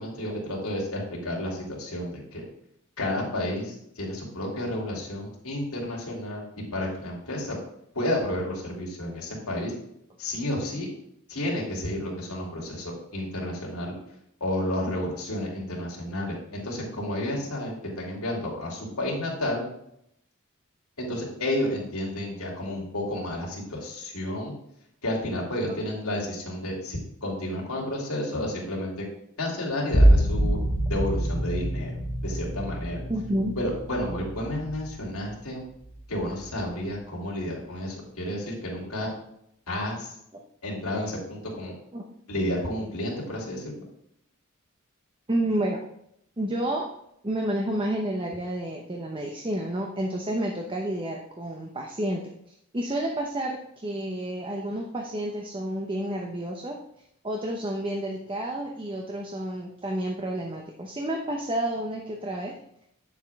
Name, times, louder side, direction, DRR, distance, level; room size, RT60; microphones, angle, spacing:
voice 1, 0.0-2.5 3.0-7.6 7.9-9.7 10.2-10.9 11.3-13.9 14.4-19.7 21.0-24.5 25.0-29.0 29.4-30.6 30.9-31.9 32.2-33.0 33.6-35.6 36.1-39.1 39.7-40.1 40.6-41.8 42.3-43.7, left 1 dB, 85° left, -3 dB, 3.0 m, -31 dB
sound 1, 29.9-35.4 35.8-36.4, right 1 dB, 45° left, 1.4 m, -25 dB
voice 2, 33.1-33.5 41.9-42.0 45.3-45.8 46.4-46.9 47.2-52.2 52.7-56.8 57.2-62.5, right 1 dB, 25° right, 1 dB, 0.8 m, -30 dB
9.0 x 7.2 x 3.6 m, 0.74 s
head